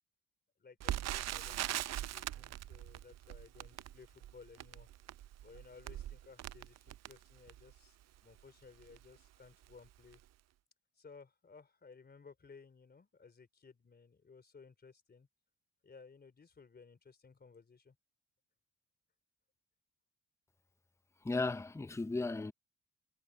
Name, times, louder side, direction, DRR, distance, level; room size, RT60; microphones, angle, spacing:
voice 1, 0.6-4.9 5.4-8.0 8.2-10.2 11.0-15.3 15.8-18.0, left 5 dB, 35° left, 3.8 m, -58 dB
Crackle, 0.8-7.8 8.4-8.5 8.8-9.0 9.6-9.9 10.1-10.2, right 13 dB, 60° right, 0.6 m, -41 dB
voice 2, 21.2-22.5, left 3 dB, 10° left, 0.6 m, -35 dB
cardioid pair, 90°, 30 cm